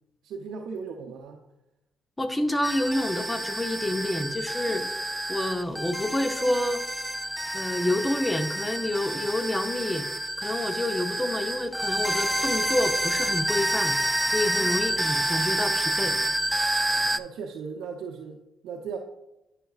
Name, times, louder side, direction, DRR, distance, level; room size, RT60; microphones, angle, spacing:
voice 1, 0.2-1.4 14.5-15.0 16.9-19.0, right 5 dB, 80° right, 2 dB, 0.6 m, -38 dB
voice 2, 2.2-4.9 5.3-6.8 7.5-10.1 10.4-14.0 14.2-16.2, left 1 dB, 10° left, 8 dB, 0.7 m, -28 dB
sound 1, 2.6-17.2, right 1 dB, 10° right, 0.3 m, -28 dB
10.0 x 5.8 x 2.4 m, 0.90 s
cardioid pair, 90°, 0 cm